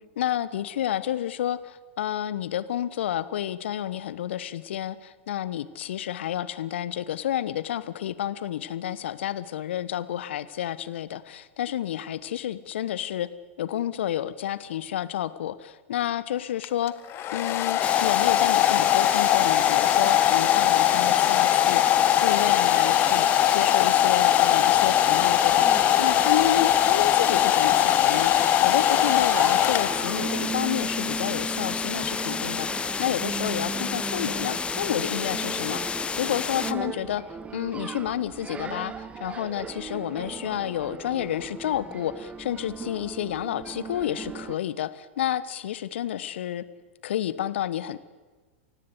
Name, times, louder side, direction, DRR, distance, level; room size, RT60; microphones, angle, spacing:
voice 1, 0.0-13.3 13.6-16.9 17.3-21.8 22.2-37.2 37.5-46.6 47.0-48.0, left 11 dB, 65° left, 16 dB, 1.2 m, -30 dB
Domestic sounds home sounds, 16.6-30.4, left 12 dB, 35° left, 1.5 m, -21 dB
sound 1, 17.8-36.7, left 5 dB, 15° left, 0.8 m, -31 dB
sound 2, 24.7-44.6, right 5 dB, 20° right, 1.3 m, -38 dB
29.0 x 16.5 x 8.2 m, 1.3 s
figure-of-eight pair, 95°, 7 cm